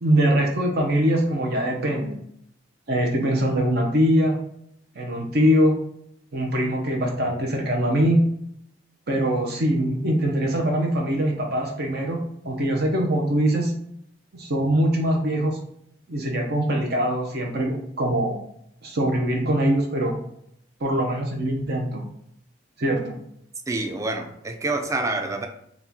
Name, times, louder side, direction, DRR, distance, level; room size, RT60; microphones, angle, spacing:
voice 1, 0.0-2.2 2.9-4.3 5.0-5.7 6.3-8.2 9.1-12.2 12.4-13.7 14.3-15.6 16.1-18.4 18.8-20.2 20.8-22.0 22.8-23.2, equal, 60° right, 1 dB, 0.7 m, -22 dB
voice 2, 23.7-25.5, right 2 dB, 15° right, 5 dB, 0.4 m, -27 dB
4.2 x 2.4 x 3.5 m, 0.70 s
head